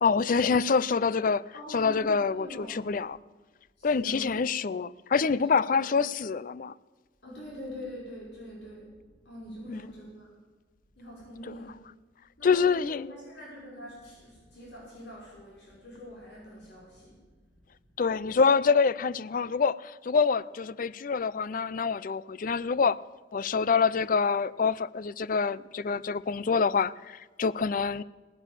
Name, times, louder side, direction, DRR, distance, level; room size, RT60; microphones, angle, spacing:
voice 1, 0.0-1.4 1.7-3.2 3.8-6.7 9.7-9.8 11.5-11.6 12.4-13.1 18.0-23.0 23.3-28.0, left 5 dB, 50° left, 0.4 m, -26 dB
voice 2, 1.5-3.1 3.8-4.3 5.3-6.0 7.2-8.9 9.2-10.3 10.9-11.8 12.4-17.8, equal, 65° left, 5.7 m, -44 dB
18.0 x 10.0 x 7.4 m
head